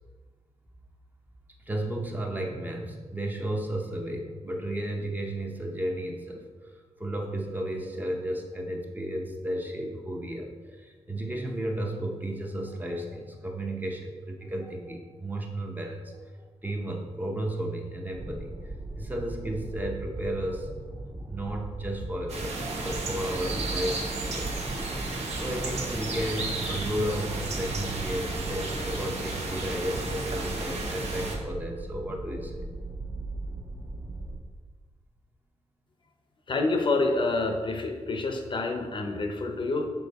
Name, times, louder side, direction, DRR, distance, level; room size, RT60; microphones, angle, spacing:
voice 1, 1.7-6.7 7.0-16.2 16.6-18.6 19.0-20.7 21.2-24.5 25.3-32.6, right 1 dB, 15° right, 0 dB, 0.7 m, -33 dB
sound 1, 18.1-34.4, right 2 dB, 30° right, 1.3 m, -39 dB
sound 2, 22.3-31.4, right 2 dB, 65° right, 1.2 m, -33 dB
voice 2, 36.5-39.9, left 3 dB, 45° left, 3 dB, 0.7 m, -27 dB
7.0 x 4.2 x 4.1 m, 1.5 s
wide cardioid pair, 155°, 12 cm